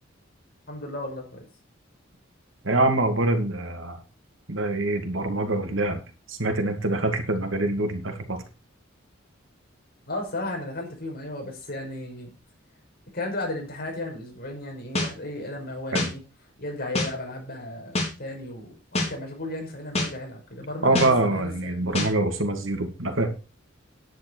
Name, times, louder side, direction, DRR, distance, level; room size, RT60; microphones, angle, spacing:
voice 1, 0.7-1.4 10.1-12.3 13.1-16.2 16.6-21.9, left 1 dB, 50° left, 5.4 m, -34 dB
voice 2, 2.6-4.0 4.5-6.0 6.3-8.4 15.9-16.1 20.8-23.3, right 2 dB, 70° right, 2.5 m, -25 dB
sound 1, 15.0-15.1 15.9-16.1 16.9-17.1 18.0-18.1 18.9-19.1 19.9-20.1 21.0-21.1 21.9-22.1, left 1 dB, 35° left, 4.3 m, -25 dB
10.5 x 9.8 x 4.7 m
head